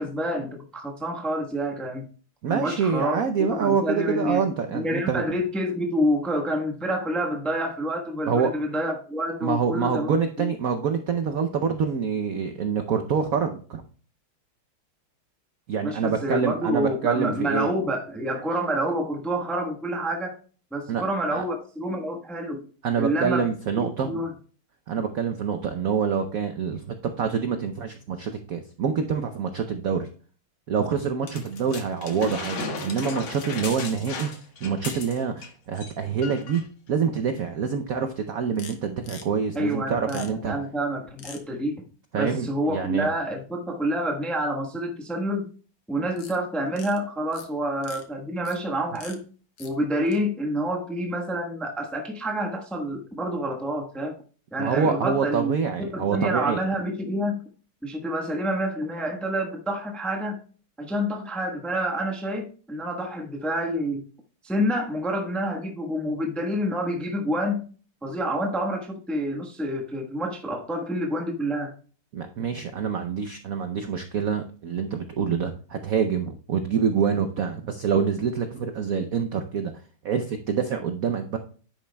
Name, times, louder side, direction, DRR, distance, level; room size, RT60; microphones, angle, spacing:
voice 1, 0.0-2.1 2.5-4.4 4.7-10.1 10.4-10.5 15.8-20.4 20.7-22.7 22.9-23.5 24.0-24.3 39.5-41.8 42.1-45.5 45.9-49.2 49.6-54.1 54.5-55.5 55.8-57.4 57.8-60.4 60.8-64.1 64.4-67.6 68.0-71.7, equal, ahead, 1 dB, 0.6 m, -28 dB
voice 2, 2.4-5.2 8.3-8.5 9.4-13.8 15.7-17.7 20.9-21.0 21.3-21.4 22.8-24.2 24.9-26.8 27.2-30.1 30.7-34.3 34.6-40.6 42.1-43.1 54.6-56.6 72.1-79.7 80.0-81.4, right 6 dB, 80° right, 7 dB, 0.7 m, -26 dB
sound 1, 31.3-35.5 35.8-35.9 36.2-36.7 37.4-37.5, left 4 dB, 70° left, 2.3 m, -35 dB
sound 2, 38.6-38.8 39.0-39.2 40.1-40.3 41.2-41.4 46.2-46.4 46.7-47.0 47.3-47.5 47.8-48.0 48.5-48.6 49.0-49.2 49.6-49.7 50.1-50.2, left 7 dB, 90° left, 2.1 m, -43 dB
10.5 x 9.1 x 2.2 m, 0.41 s
omnidirectional pair, 2.4 m